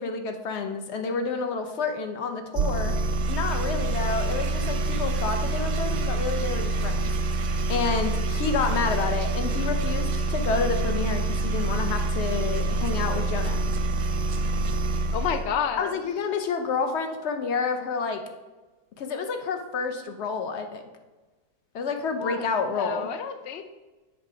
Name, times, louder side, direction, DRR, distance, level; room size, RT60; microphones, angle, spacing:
voice 1, 0.0-2.9 3.3-7.1 7.4-13.6 15.8-18.2 19.0-20.8 21.7-23.1, left 4 dB, 55° left, 6 dB, 0.8 m, -29 dB
sound 1, 2.5-15.5, right 2 dB, 65° right, 0.8 m, -26 dB
voice 2, 15.1-16.0 22.2-23.6, left 7 dB, 90° left, 8 dB, 0.5 m, -30 dB
7.5 x 3.6 x 4.8 m, 1.2 s
omnidirectional pair, 1.7 m